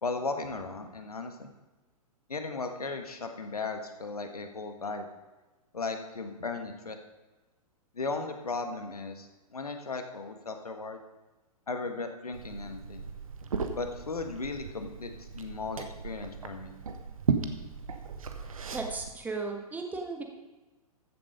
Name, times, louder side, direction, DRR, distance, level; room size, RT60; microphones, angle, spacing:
voice 1, 0.0-1.5 2.3-5.1 5.7-7.0 7.9-11.0 11.7-13.1 13.7-16.7, left 3 dB, 70° left, 6 dB, 1.5 m, -36 dB
Liquid, 12.3-19.1, right 5 dB, 60° right, 1.3 m, -36 dB
voice 2, 18.7-20.2, right 3 dB, 10° right, 2 dB, 1.3 m, -35 dB
14.5 x 7.6 x 5.1 m, 1.2 s
figure-of-eight pair, 115°, 20 cm